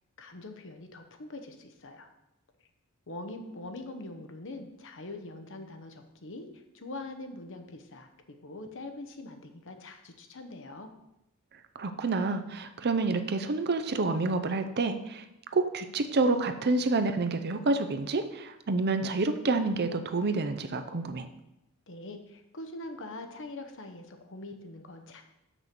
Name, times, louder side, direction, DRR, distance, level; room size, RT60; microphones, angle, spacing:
voice 1, 0.2-2.1 3.1-6.5 6.7-10.9 21.9-25.2, left 2 dB, 60° left, 6 dB, 1.0 m, -43 dB
voice 2, 11.7-15.2 15.5-21.3, right 3 dB, 50° right, 9 dB, 0.6 m, -28 dB
6.8 x 6.1 x 6.0 m, 0.89 s
head